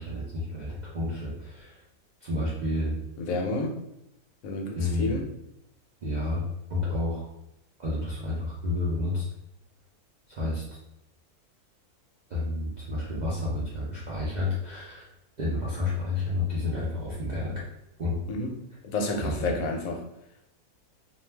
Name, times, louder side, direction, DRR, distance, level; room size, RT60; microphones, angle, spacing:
voice 1, 0.0-1.8 2.2-2.9 4.8-5.2 6.0-7.3 7.8-9.3 10.3-10.6 12.3-15.1 15.4-17.6 18.0-18.2 19.2-19.5, left 2 dB, 75° right, -7 dB, 0.4 m, -30 dB
voice 2, 3.2-3.8 4.4-5.2 18.3-18.5 18.8-20.0, left 2 dB, 70° left, 1 dB, 0.9 m, -30 dB
2.5 x 2.3 x 3.2 m, 0.83 s
omnidirectional pair, 1.6 m